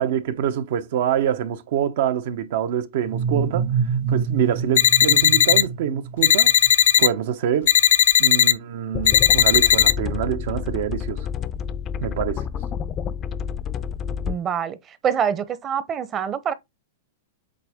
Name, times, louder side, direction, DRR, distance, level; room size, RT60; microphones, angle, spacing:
voice 1, 0.0-3.7 4.1-6.5 7.0-7.7 8.2-11.3 12.0-12.4, right 9 dB, 65° right, 0.9 m, -25 dB
sound 1, 3.0-6.7, right 6 dB, 45° right, 1.3 m, -26 dB
sound 2, 4.8-5.6 6.2-7.1 7.7-8.5 9.1-9.9, left 10 dB, 70° left, 0.6 m, -16 dB
sound 3, 8.9-14.3, left 8 dB, 30° left, 0.5 m, -29 dB
voice 2, 14.3-16.5, right 8 dB, 25° right, 0.9 m, -25 dB
7.8 x 3.5 x 3.6 m
hypercardioid pair, 130°, 0 cm